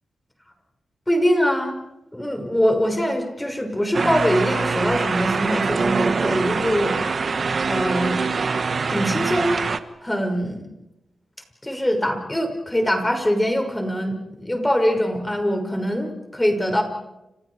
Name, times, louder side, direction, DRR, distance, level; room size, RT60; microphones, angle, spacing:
voice 1, 1.1-1.8 2.1-7.0 7.6-8.2 8.9-9.6 10.0-10.6 11.6-16.8, equal, 10° left, 4 dB, 5.9 m, -23 dB
sound 1, 3.9-9.8, right 4 dB, 55° right, 1.4 m, -24 dB
30.0 x 28.5 x 4.9 m, 0.94 s
cardioid pair, 70°, 0 cm